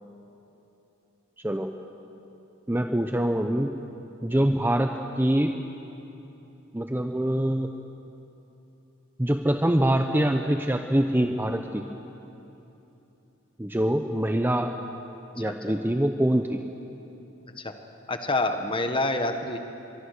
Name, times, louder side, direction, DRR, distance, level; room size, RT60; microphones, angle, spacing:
voice 1, 2.7-3.7 4.2-4.9 5.2-5.5 6.7-7.7 9.2-11.9 13.6-14.7 15.3-16.6, right 1 dB, 10° right, 5 dB, 0.8 m, -24 dB
voice 2, 15.4-15.8 17.6-17.7 18.1-19.6, left 2 dB, 25° left, 7 dB, 1.5 m, -27 dB
24.0 x 22.5 x 6.7 m, 3.0 s
head